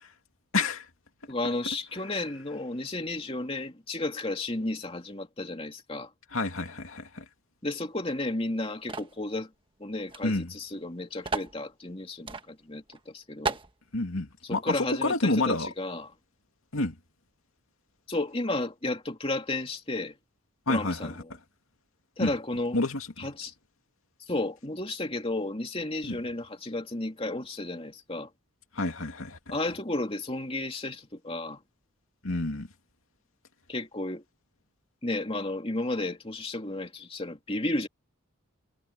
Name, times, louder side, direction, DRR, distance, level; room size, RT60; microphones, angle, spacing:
voice 1, 0.5-0.9 6.3-7.3 10.2-10.5 13.9-15.7 16.7-16.9 20.7-21.2 22.2-22.3 22.7-23.1 26.0-26.2 28.7-29.5 32.2-32.7, left 2 dB, 75° left, 2.5 m, -29 dB
voice 2, 1.3-6.1 7.6-9.5 9.8-13.6 14.4-16.1 18.1-20.1 20.7-21.3 22.2-22.8 23.2-23.5 24.3-28.3 29.5-31.6 33.7-34.2 35.0-37.9, left 2 dB, 25° left, 2.8 m, -33 dB
sound 1, 8.9-9.2 10.1-10.2 10.5-10.6 11.2-11.6 12.3-12.5 12.9-13.0 13.5-13.7, right 4 dB, 25° right, 1.4 m, -32 dB
head